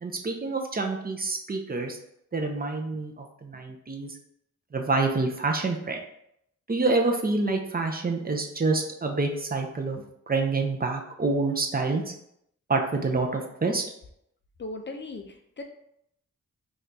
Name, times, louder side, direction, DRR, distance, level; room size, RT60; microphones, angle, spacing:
voice 1, 0.0-2.0 2.3-4.1 4.7-6.0 6.7-12.1 12.7-13.8, right 3 dB, 30° right, 2 dB, 0.5 m, -27 dB
voice 2, 14.6-15.6, left 2 dB, 40° left, 4 dB, 0.4 m, -38 dB
4.2 x 2.4 x 2.6 m, 0.75 s
wide cardioid pair, 75°, 31 cm